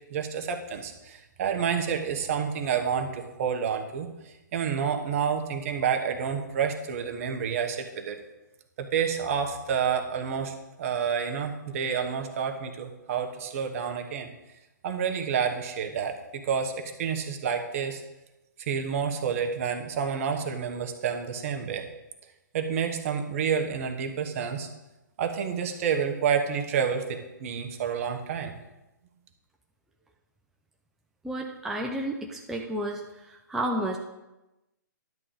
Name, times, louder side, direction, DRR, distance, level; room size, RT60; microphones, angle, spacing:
voice 1, 0.1-4.1 4.5-8.2 8.8-14.3 14.8-18.0 18.6-21.8 22.5-24.7 25.2-28.5, right 7 dB, 45° right, 5 dB, 1.1 m, -29 dB
voice 2, 31.2-33.0 33.3-34.0, right 1 dB, 5° right, 0 dB, 0.5 m, -31 dB
10.5 x 3.8 x 7.0 m, 0.99 s
hypercardioid pair, 140°, 10 cm